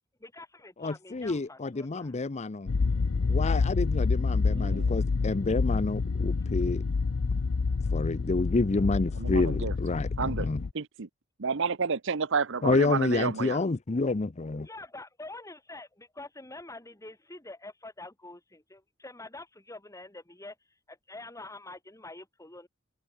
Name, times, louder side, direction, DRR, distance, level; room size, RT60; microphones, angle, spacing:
voice 1, 0.2-2.2 14.6-20.6 20.9-22.7, left 2 dB, 15° left, 3.7 m, -46 dB
voice 2, 0.8-2.8 3.2-6.8 7.9-10.6 12.6-14.7, left 3 dB, 35° left, 0.6 m, -29 dB
sound 1, 2.7-10.7, left 4 dB, 80° left, 0.6 m, -28 dB
voice 3, 4.5-4.9 9.2-9.7 10.2-11.1 11.4-13.6, right 5 dB, 65° right, 0.9 m, -31 dB
head